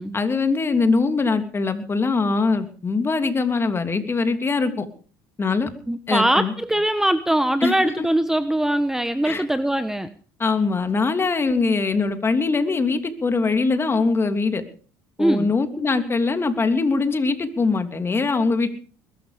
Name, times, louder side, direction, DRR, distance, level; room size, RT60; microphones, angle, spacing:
voice 1, 0.1-4.9 5.4-5.7 6.1-6.5 7.6-8.1 9.2-9.4 10.4-14.6 15.2-18.7, left 4 dB, 25° left, 8 dB, 3.1 m, -22 dB
voice 2, 5.9-10.1 15.2-15.5, right 1 dB, 5° right, 12 dB, 1.2 m, -22 dB
21.5 x 12.5 x 5.2 m, 0.41 s
supercardioid pair, 90°, 9 cm